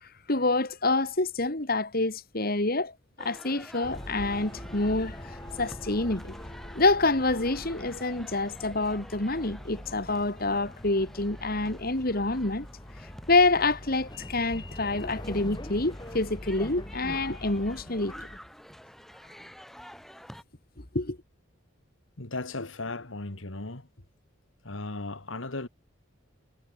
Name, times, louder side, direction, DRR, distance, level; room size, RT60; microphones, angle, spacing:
voice 1, 0.0-6.3 6.7-12.7 13.3-18.1 20.9-21.2, left 2 dB, 50° left, 2.6 m, -27 dB
sound 1, 3.2-20.4, equal, ahead, 5.5 m, -49 dB
sound 2, 3.8-18.4, left 1 dB, 20° left, 2.5 m, -43 dB
voice 2, 22.2-23.9 24.6-25.7, left 2 dB, 80° left, 2.3 m, -36 dB
head